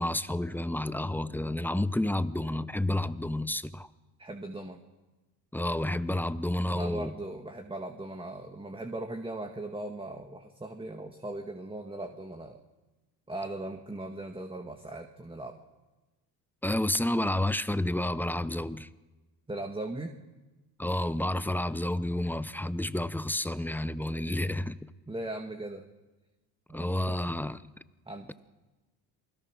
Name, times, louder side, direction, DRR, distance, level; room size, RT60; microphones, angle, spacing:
voice 1, 0.0-3.9 5.5-7.1 16.6-18.9 20.8-24.8 26.7-27.6, left 1 dB, 5° left, 0.8 m, -30 dB
voice 2, 4.2-4.8 6.7-12.6 13.3-15.6 19.5-20.2 25.1-25.9 26.7-27.3 28.1-28.3, right 2 dB, 10° right, 1.8 m, -39 dB
28.0 x 20.5 x 6.4 m
supercardioid pair, 80°, 44 cm